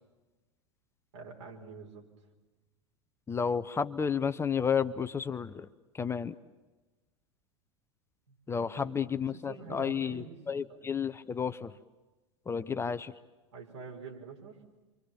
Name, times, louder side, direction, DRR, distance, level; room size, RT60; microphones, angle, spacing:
voice 1, 1.1-2.0 8.6-10.4 10.7-10.8 13.5-14.6, right 5 dB, 70° right, 0 dB, 5.8 m, -46 dB
voice 2, 3.3-5.7 5.9-6.3 8.5-11.7 12.5-13.1, left 6 dB, 15° left, 11 dB, 0.8 m, -31 dB
29.0 x 25.0 x 7.3 m, 1.2 s
figure-of-eight pair, 85°, 15 cm